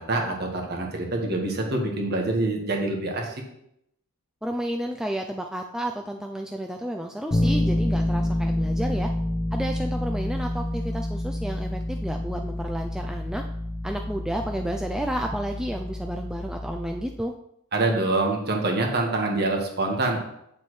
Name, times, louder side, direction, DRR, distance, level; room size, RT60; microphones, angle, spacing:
voice 1, 0.0-3.2 17.7-20.2, right 2 dB, 45° right, 1 dB, 1.5 m, -25 dB
voice 2, 4.4-9.1 9.5-13.4 13.8-17.3, right 1 dB, 5° right, 2 dB, 0.3 m, -31 dB
Bass guitar, 7.3-17.2, left 1 dB, 20° left, 0.7 m, -28 dB
8.7 x 7.0 x 3.1 m, 0.77 s
head